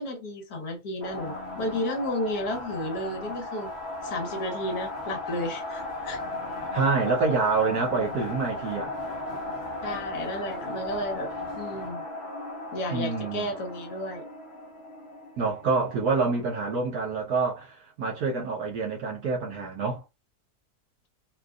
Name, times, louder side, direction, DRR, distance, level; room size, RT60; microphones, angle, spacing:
voice 1, 0.0-3.7 4.0-6.2 9.8-12.0 12.7-14.3, left 1 dB, 70° left, 1.5 m, -33 dB
sound 1, 1.0-16.8, left 2 dB, 50° left, 1.0 m, -36 dB
voice 2, 6.7-8.9 12.9-13.5 15.4-20.0, right 4 dB, 75° right, 1.4 m, -27 dB
3.9 x 2.4 x 2.4 m
omnidirectional pair, 1.7 m